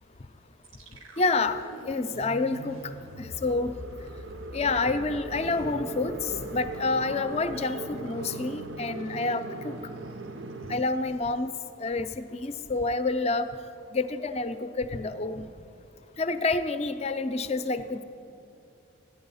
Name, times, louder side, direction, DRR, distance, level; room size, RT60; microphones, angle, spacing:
sound 1, 0.6-9.7 10.0-10.1 10.5-10.9, right 1 dB, 90° right, 1.2 m, -45 dB
voice 1, 1.2-2.8 3.2-3.7 4.5-9.8 10.7-11.5 11.8-13.5 13.9-15.5 16.2-18.0, left 3 dB, 30° left, 11 dB, 0.5 m, -28 dB
sound 2, 3.1-10.8, right 3 dB, 60° right, 0.6 m, -39 dB
13.5 x 9.7 x 5.6 m, 2.8 s
head